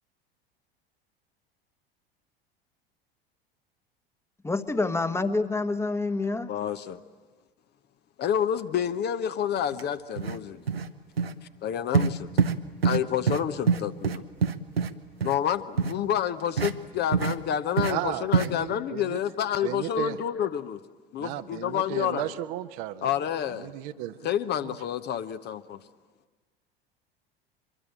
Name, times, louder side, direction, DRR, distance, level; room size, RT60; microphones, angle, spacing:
voice 1, 4.4-6.5, left 3 dB, 10° left, 11 dB, 1.3 m, -27 dB
voice 2, 6.5-7.0 8.2-10.6 11.6-12.3 12.8-14.2 15.2-20.8 21.1-22.3 23.0-23.7 24.2-25.8, left 9 dB, 35° left, 11 dB, 0.9 m, -29 dB
sound 1, 9.7-9.8 10.2-10.4 10.7-10.9 11.2-11.3 11.9-12.1 12.4-12.6 12.8-13.0 13.3-13.4 13.7-14.9 15.2-15.4 15.8-15.9 16.6-16.7 17.1-17.4 17.8-17.9 18.3-18.5, right 6 dB, 80° right, 0.9 m, -24 dB
voice 3, 17.9-19.2 19.6-20.2 21.2-23.1 23.5-24.2 24.6-24.7, right 13 dB, 50° right, 10 dB, 1.0 m, -34 dB
24.5 x 23.0 x 8.9 m, 1.4 s
figure-of-eight pair, 75°, 30 cm